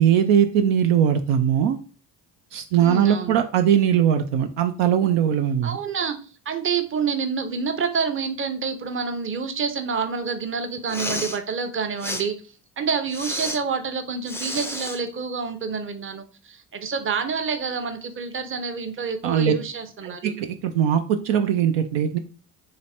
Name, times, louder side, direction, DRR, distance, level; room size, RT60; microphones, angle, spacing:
voice 1, 0.0-1.8 2.5-5.8 19.2-19.5 20.0-22.2, right 9 dB, 60° right, 6 dB, 0.6 m, -20 dB
voice 2, 2.8-3.4 5.6-6.2 6.5-12.3 12.8-20.4, right 5 dB, 25° right, 7 dB, 0.7 m, -28 dB
Respiratory sounds, 10.8-11.4 12.0-12.2 13.1-13.6 14.3-15.0, left 1 dB, 5° left, 0.5 m, -31 dB
3.2 x 3.0 x 4.2 m, 0.37 s
hypercardioid pair, 50°, 48 cm